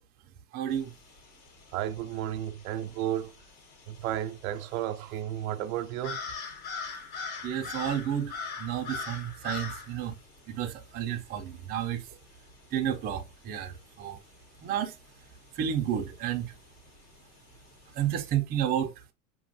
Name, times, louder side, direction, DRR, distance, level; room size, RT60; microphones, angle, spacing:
voice 1, 0.5-0.9 7.4-8.3 8.6-10.1 10.5-12.0 12.7-14.2 14.6-15.0 15.6-16.5 17.9-18.9, right 10 dB, 20° right, 0.5 m, -31 dB
sound 1, 0.7-18.3, left 5 dB, 65° left, 1.8 m, -44 dB
voice 2, 1.7-3.3 3.9-6.3, right 12 dB, 70° right, 0.5 m, -33 dB
5.0 x 3.0 x 2.7 m
supercardioid pair, 150°, 43 cm